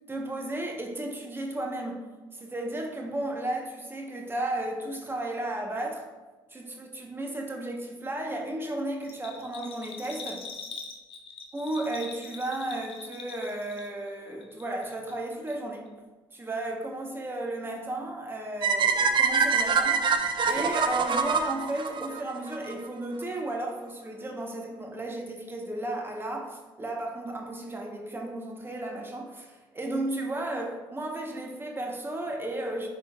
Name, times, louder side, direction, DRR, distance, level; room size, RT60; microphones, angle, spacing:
voice 1, 0.1-6.0 6.5-10.5 11.5-15.9 16.3-32.9, right 1 dB, 20° right, 1 dB, 1.2 m, -34 dB
Bell, 9.0-14.1 14.4-15.2 15.5-15.6, left 5 dB, 60° left, 0.9 m, -43 dB
sound 1, 18.6-22.7, right 5 dB, 45° right, 0.5 m, -25 dB
10.5 x 3.8 x 2.5 m, 1.2 s
supercardioid pair, 60°, 11 cm